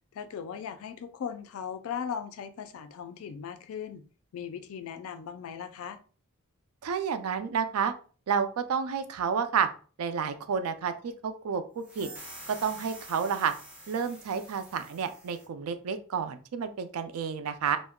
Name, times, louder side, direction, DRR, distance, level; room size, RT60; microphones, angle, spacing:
voice 1, 0.1-4.0 4.3-6.0, left 7 dB, 65° left, 10 dB, 0.3 m, -38 dB
voice 2, 6.8-7.9 8.3-9.7 10.0-12.1 12.5-13.5 13.9-17.8, right 6 dB, 80° right, 9 dB, 0.4 m, -30 dB
sound 1, 11.8-15.5, right 1 dB, 5° right, 0.6 m, -47 dB
2.2 x 2.0 x 3.5 m, 0.39 s
head